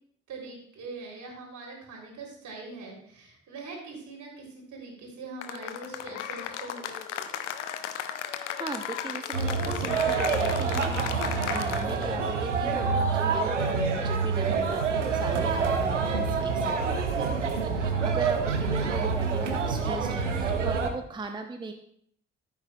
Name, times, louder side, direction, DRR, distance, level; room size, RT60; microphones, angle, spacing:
voice 1, 0.3-7.5, right 3 dB, 55° right, -1 dB, 3.4 m, -43 dB
Cheering / Applause, 5.4-12.1, left 9 dB, 80° left, 0.6 m, -35 dB
voice 2, 8.5-17.4 17.7-21.7, right 3 dB, 15° right, 5 dB, 0.8 m, -38 dB
sound 1, 9.3-20.9, right 5 dB, 85° right, 0.7 m, -27 dB
14.0 x 8.2 x 2.3 m, 0.67 s
figure-of-eight pair, 40°, 36 cm